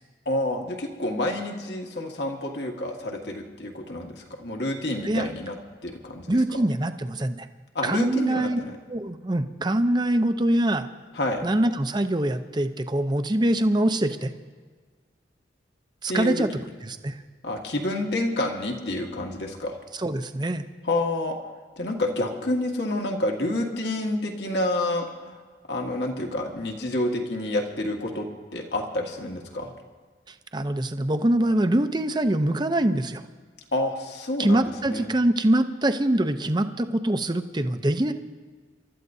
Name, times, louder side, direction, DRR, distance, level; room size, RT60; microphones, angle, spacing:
voice 1, 0.2-5.6 5.8-6.6 7.7-8.8 11.1-11.5 16.1-16.6 17.4-19.8 20.8-21.4 21.8-25.4 25.7-28.3 28.5-29.7 33.7-35.1, left 1 dB, 65° left, 2 dB, 1.7 m, -29 dB
voice 2, 6.3-7.5 7.8-8.6 8.9-10.9 11.4-14.3 16.0-16.5 16.8-17.1 20.0-20.6 30.5-33.2 34.4-38.1, right 1 dB, 25° right, 9 dB, 0.6 m, -24 dB
28.0 x 13.0 x 2.7 m, 1.5 s
head